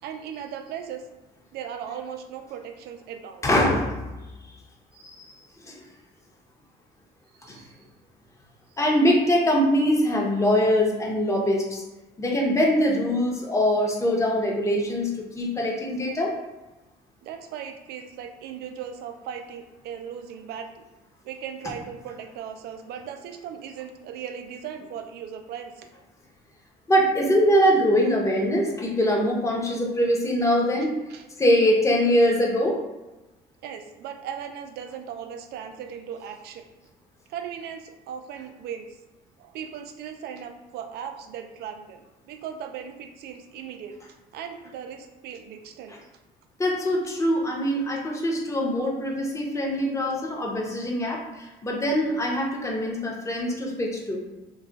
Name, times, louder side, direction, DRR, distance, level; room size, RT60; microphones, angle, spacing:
voice 1, 0.0-1.0 1.5-3.5 7.4-7.7 8.7-8.8 17.2-20.8 21.2-25.9 30.8-31.2 33.6-36.6 37.3-38.9 39.4-44.0 44.3-46.0 49.7-49.8, right 8 dB, 70° right, 6 dB, 0.4 m, -38 dB
voice 2, 3.4-4.0 5.0-5.3 5.7-5.8 7.5-7.6 8.8-11.8 12.2-16.3 26.9-31.0 31.4-32.8 45.9-46.0 46.6-54.2, equal, 15° left, -1 dB, 0.7 m, -23 dB
2.3 x 2.3 x 3.8 m, 1.1 s
cardioid pair, 110°, 17 cm